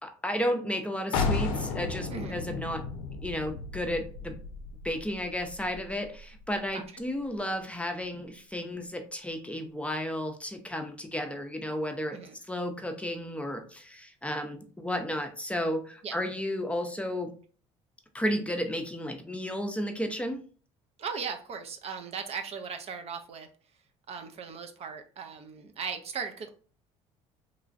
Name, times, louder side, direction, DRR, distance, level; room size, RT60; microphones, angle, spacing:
voice 1, 0.0-2.8 3.2-4.3 4.8-12.2 12.5-17.3 18.1-20.4, equal, 10° left, 4 dB, 0.5 m, -33 dB
sound 1, 1.1-6.7, left 4 dB, 85° left, 0.5 m, -34 dB
voice 2, 21.0-23.5 24.1-26.5, right 6 dB, 45° right, 6 dB, 0.5 m, -38 dB
3.0 x 2.4 x 2.4 m, 0.41 s
supercardioid pair, 75°, 14 cm